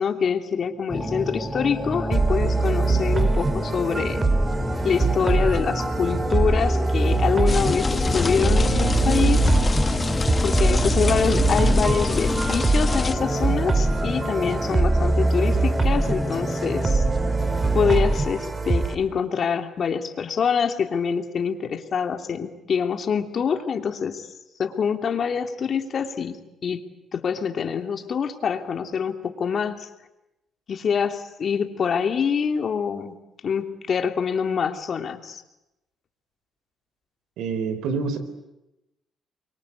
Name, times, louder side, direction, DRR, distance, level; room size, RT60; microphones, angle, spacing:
voice 1, 0.0-4.2 4.8-9.4 10.4-17.0 17.7-24.3 24.6-26.8 27.1-29.9 30.7-35.4, left 6 dB, 55° left, 6 dB, 2.8 m, -25 dB
sound 1, 0.9-18.2, left 1 dB, ahead, 3.0 m, -29 dB
sound 2, 2.1-19.0, right 3 dB, 30° right, 2.7 m, -23 dB
sound 3, 7.5-13.1, left 4 dB, 30° left, 1.2 m, -25 dB
voice 2, 37.4-38.2, right 5 dB, 85° right, 11 dB, 4.2 m, -26 dB
28.5 x 24.0 x 8.3 m, 0.92 s
cardioid pair, 90°, 0 cm